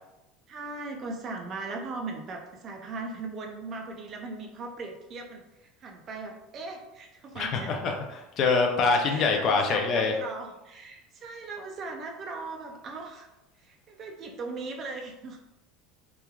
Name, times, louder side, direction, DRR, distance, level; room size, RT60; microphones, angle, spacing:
voice 1, 0.5-7.7 9.1-13.3 13.6-15.4, right 3 dB, 30° right, 2 dB, 0.4 m, -39 dB
voice 2, 7.4-10.1, left 4 dB, 35° left, 3 dB, 0.4 m, -25 dB
3.0 x 2.2 x 2.3 m, 0.95 s
cardioid pair, 155°, 0 cm